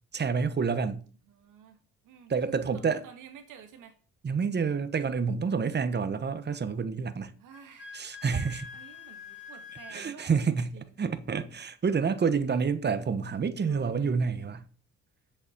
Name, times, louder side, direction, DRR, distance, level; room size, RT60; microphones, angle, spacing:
voice 1, 0.1-1.0 2.3-3.0 4.2-7.3 7.9-8.7 9.9-10.7 11.0-14.6, right 5 dB, 35° right, 1.3 m, -28 dB
voice 2, 1.2-1.8 2.0-3.9 5.7-5.9 7.4-7.9 8.7-10.9 13.7-14.2, right 7 dB, 90° right, 2.3 m, -51 dB
Wind instrument woodwind instrument, 7.5-10.1, left 5 dB, 35° left, 4.4 m, -45 dB
7.7 x 7.2 x 7.4 m
cardioid pair, 90°, 30 cm